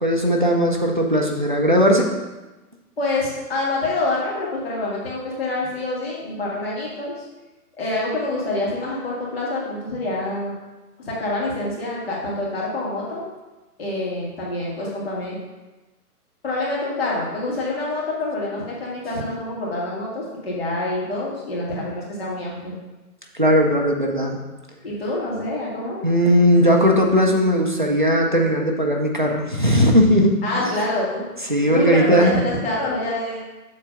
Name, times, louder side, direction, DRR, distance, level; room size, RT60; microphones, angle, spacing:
voice 1, 0.0-2.1 23.3-24.4 26.0-30.3 31.5-32.4, equal, 35° right, 0 dB, 0.4 m, -18 dB
voice 2, 3.0-7.2 7.8-10.5 11.0-13.2 13.8-15.4 16.4-22.7 24.8-26.0 30.4-31.2 31.7-33.4, left 2 dB, 40° left, -5 dB, 1.9 m, -26 dB
7.4 x 3.3 x 5.1 m, 1.1 s
hypercardioid pair, 175°, 47 cm